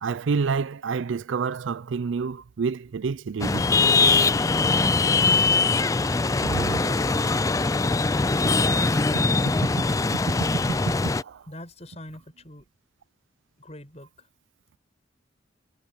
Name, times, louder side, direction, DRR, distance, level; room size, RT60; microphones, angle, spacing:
voice 1, 0.0-3.7 6.4-7.2 10.5-10.6 11.2-11.4, right 5 dB, 85° right, 0.4 m, -28 dB
sound 1, 3.4-11.2, left 3 dB, 15° left, 0.3 m, -22 dB
voice 2, 11.5-12.7 13.6-14.3, left 1 dB, 35° left, 6.3 m, -43 dB
head